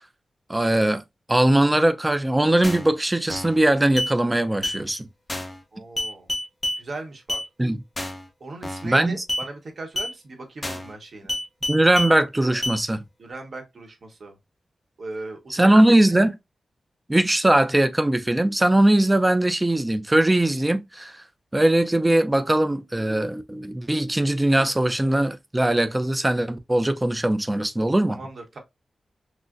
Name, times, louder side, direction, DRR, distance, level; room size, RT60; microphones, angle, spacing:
voice 1, 0.5-1.0 1.3-5.1 7.6-7.8 8.8-9.2 11.7-13.0 15.5-16.3 17.1-21.2 21.5-28.2, right 1 dB, 15° right, 0.4 m, -20 dB
sound 1, 2.6-2.9 3.3-3.6 4.0-4.1 4.6-4.8 5.3-5.6 6.0-6.8 7.3-7.5 8.0-8.3 8.6-8.9 9.3-9.5 10.0-10.1 10.6-10.9 11.3-12.1 12.6-12.8, left 1 dB, 20° left, 0.7 m, -28 dB
voice 2, 5.7-6.3 6.8-7.4 8.4-11.4 13.2-14.4 15.0-15.8 16.1-16.2 28.1-28.6, right 3 dB, 50° right, 1.0 m, -38 dB
6.2 x 2.1 x 2.4 m
wide cardioid pair, 145°, 0 cm